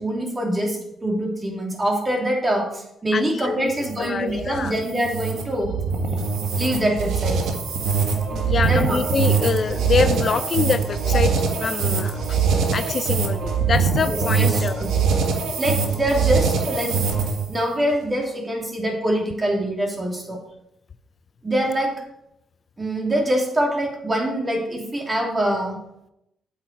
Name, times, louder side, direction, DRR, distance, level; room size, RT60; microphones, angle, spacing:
voice 1, 0.0-5.7 6.6-7.3 8.7-9.0 14.0-14.9 15.6-17.0 17.5-20.4 21.4-21.9 22.8-25.8, right 1 dB, 20° right, 0 dB, 2.8 m, -24 dB
voice 2, 3.1-4.7 8.3-11.3 11.6-12.4 12.7-14.8, left 5 dB, 45° left, 10 dB, 0.5 m, -25 dB
sound 1, 3.7-17.5, right 5 dB, 75° right, 1.7 m, -23 dB
8.3 x 7.9 x 4.6 m, 0.80 s
cardioid pair, 90°, 0 cm